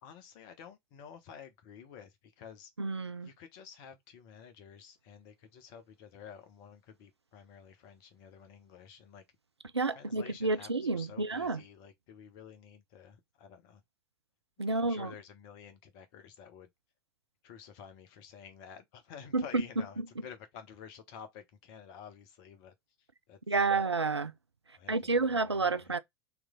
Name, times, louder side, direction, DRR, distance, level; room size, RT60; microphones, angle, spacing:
voice 1, 0.0-2.7 3.2-9.2 9.9-13.8 14.6-16.7 17.4-22.7 23.3-23.8 24.8-25.9, left 7 dB, 50° left, 1.2 m, -51 dB
voice 2, 2.8-3.3 9.7-11.6 14.6-15.1 19.3-19.6 23.5-24.3 24.9-26.0, right 3 dB, 85° right, 0.5 m, -30 dB
3.4 x 3.3 x 3.7 m
figure-of-eight pair, 85°, 13 cm